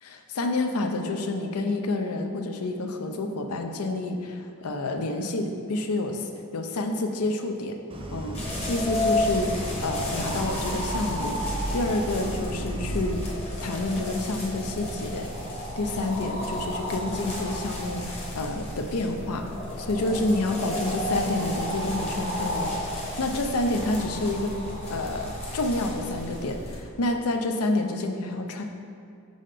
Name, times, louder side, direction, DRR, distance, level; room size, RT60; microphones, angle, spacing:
voice 1, 0.0-7.8 8.1-8.4 8.6-15.3 15.8-19.5 19.8-22.7 23.2-24.6 24.9-28.6, left 2 dB, 80° left, 5 dB, 0.6 m, -29 dB
Idling, 7.9-14.0, right 1 dB, 25° right, 0.7 m, -35 dB
sound 1, 8.3-26.8, left 1 dB, 25° left, 1.0 m, -32 dB
6.4 x 3.9 x 5.0 m, 2.4 s
head